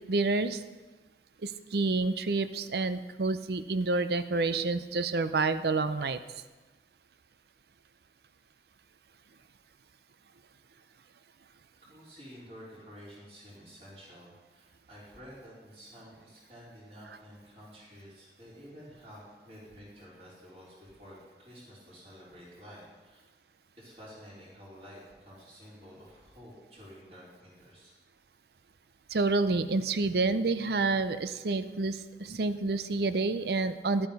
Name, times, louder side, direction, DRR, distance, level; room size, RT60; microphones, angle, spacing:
voice 1, 0.1-0.6 1.4-6.2 29.1-34.1, right 3 dB, 60° right, 12 dB, 0.6 m, -28 dB
voice 2, 11.9-23.3 23.7-27.9, equal, 35° right, -7 dB, 4.3 m, -51 dB
11.5 x 8.8 x 5.4 m, 1.3 s
head